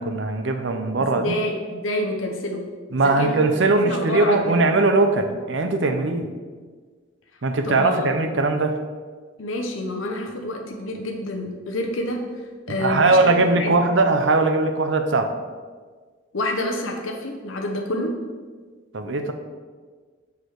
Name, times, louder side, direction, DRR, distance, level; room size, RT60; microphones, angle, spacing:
voice 1, 0.0-1.4 2.9-6.3 7.4-8.8 12.7-15.3 18.9-19.3, right 3 dB, 65° right, 7 dB, 0.7 m, -20 dB
voice 2, 1.0-2.6 2.9-3.6 3.8-4.6 7.6-8.1 9.4-12.2 12.7-13.9 16.3-18.1, left 1 dB, 85° left, 2 dB, 0.8 m, -28 dB
6.8 x 4.9 x 4.6 m, 1.5 s
head